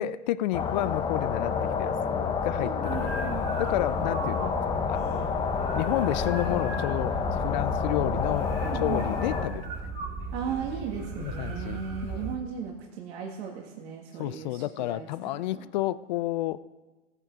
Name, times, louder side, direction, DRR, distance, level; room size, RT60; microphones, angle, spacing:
voice 1, 0.0-1.5 1.8-4.6 4.9-5.2 5.7-8.5 8.8-9.7 11.2-12.3 14.2-16.6, left 15 dB, 40° left, 17 dB, 0.4 m, -31 dB
sound 1, 0.5-9.5, left 6 dB, 15° left, 0.7 m, -29 dB
voice 2, 2.5-3.4 8.6-9.1 10.3-15.7, right 7 dB, 55° right, 0 dB, 1.9 m, -36 dB
sound 2, 2.8-12.4, right 4 dB, 25° right, 2.0 m, -37 dB
15.0 x 8.9 x 4.7 m, 1.2 s
hypercardioid pair, 135°, 37 cm